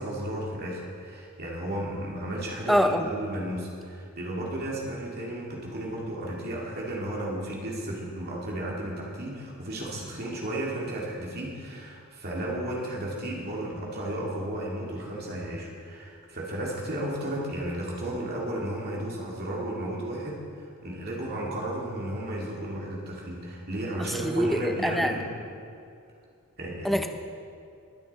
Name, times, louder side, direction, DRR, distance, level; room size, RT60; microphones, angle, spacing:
voice 1, 0.0-25.3 26.6-27.1, right 1 dB, 45° right, -3 dB, 2.3 m, -34 dB
voice 2, 2.7-3.1 24.0-25.1 26.8-27.1, equal, ahead, 6 dB, 0.7 m, -25 dB
21.5 x 10.0 x 4.2 m, 2.4 s
head